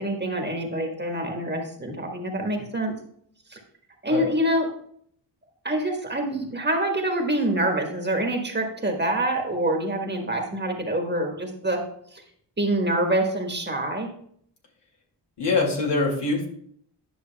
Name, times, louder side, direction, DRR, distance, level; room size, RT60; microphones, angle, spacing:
voice 1, 0.0-2.9 3.5-3.6 4.0-4.7 5.6-11.8 12.1-12.2 12.6-14.1, right 1 dB, 25° right, 2 dB, 1.4 m, -26 dB
voice 2, 15.4-16.5, left 3 dB, 70° left, -1 dB, 2.3 m, -24 dB
10.5 x 6.3 x 2.3 m, 0.64 s
cardioid pair, 80°, 43 cm